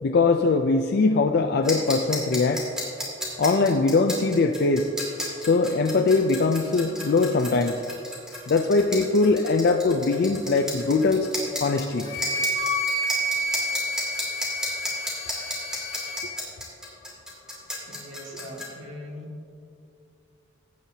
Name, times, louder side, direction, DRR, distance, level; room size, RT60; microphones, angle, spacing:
voice 1, 0.0-2.7 3.4-4.9 5.4-7.8 8.5-11.3 11.6-12.1, left 3 dB, 50° left, 4 dB, 0.4 m, -21 dB
sound 1, 1.6-18.6, left 1 dB, 5° right, 2.3 m, -33 dB
Wind instrument woodwind instrument, 12.1-16.2, equal, 75° left, 1.6 m, -29 dB
voice 2, 17.9-19.3, equal, 65° right, -1 dB, 1.7 m, -40 dB
15.5 x 8.9 x 2.8 m, 2.5 s
head